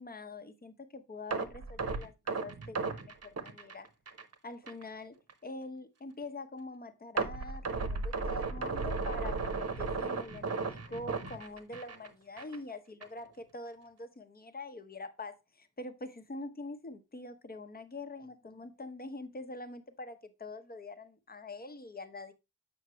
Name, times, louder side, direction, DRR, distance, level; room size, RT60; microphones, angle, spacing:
voice 1, 0.0-3.9 4.4-22.3, left 2 dB, 30° left, 0.9 m, -45 dB
sound 1, 1.3-4.3 4.7-4.8 5.3-5.4 7.2-12.1 12.4-12.6 13.0-13.1, right 4 dB, 45° right, 1.0 m, -35 dB
8.0 x 5.8 x 3.0 m
wide cardioid pair, 155°, 33 cm